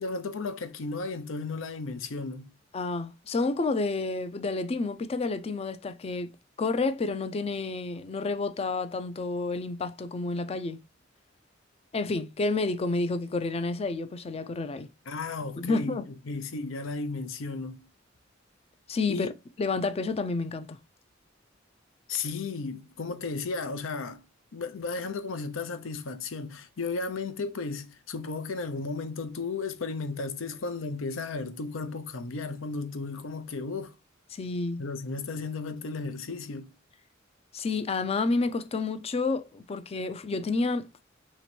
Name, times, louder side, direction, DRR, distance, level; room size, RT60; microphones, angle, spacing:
voice 1, 0.0-2.5 15.1-17.9 19.1-19.3 22.1-24.2 24.5-33.9 34.8-36.7, left 4 dB, 85° left, 0.6 m, -34 dB
voice 2, 2.7-6.3 6.6-10.8 11.9-14.9 15.6-16.0 18.9-19.3 19.6-20.8 34.3-34.8 37.5-40.9, left 3 dB, 30° left, 0.4 m, -30 dB
3.0 x 2.9 x 4.3 m
head